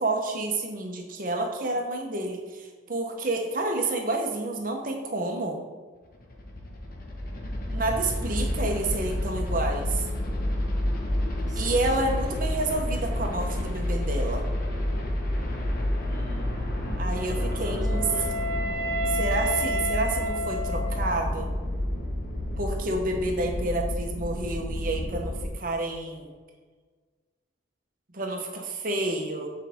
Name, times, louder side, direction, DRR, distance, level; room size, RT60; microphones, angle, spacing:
voice 1, 0.0-5.6 7.7-10.0 11.6-14.4 17.0-18.1 19.1-21.5 22.6-26.3 28.1-29.5, right 2 dB, 45° right, 2 dB, 0.9 m, -29 dB
sound 1, 6.1-25.5, left 1 dB, 45° left, 1.0 m, -29 dB
voice 2, 7.7-8.3 11.5-11.8 16.0-18.5, right 1 dB, 20° right, 0 dB, 0.9 m, -42 dB
Wind instrument woodwind instrument, 17.1-21.3, equal, 65° left, 1.9 m, -31 dB
8.2 x 4.8 x 3.6 m, 1.5 s
head